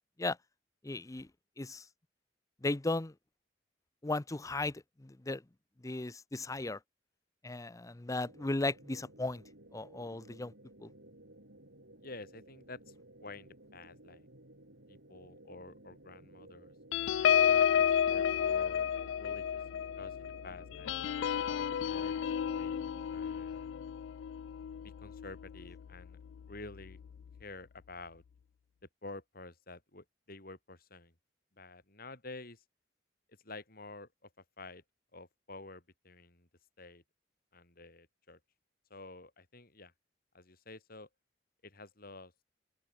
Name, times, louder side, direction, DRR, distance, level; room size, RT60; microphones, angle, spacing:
voice 1, 0.8-1.3 1.6-1.8 2.6-3.1 4.0-5.4 5.8-6.8 7.4-9.4 9.7-10.5 10.8-10.9, left 2 dB, 20° left, 0.6 m, -36 dB
sound 1, 8.2-23.0, right 1 dB, 90° right, 6.4 m, -57 dB
voice 2, 12.0-12.9 13.2-14.3 14.9-16.7 17.3-18.9 19.2-19.6 20.0-21.0 21.5-23.7 24.8-26.2 26.5-27.0 27.4-28.2 29.0-31.1 31.6-32.6 33.3-34.3 34.6-34.8 35.1-36.5 36.8-37.0 37.5-38.4 38.9-39.9 40.3-41.1 41.6-42.3, left 2 dB, 55° left, 5.0 m, -50 dB
sound 2, 16.9-25.8 26.3-26.5 26.8-27.1, left 9 dB, 80° left, 0.3 m, -31 dB
open air
head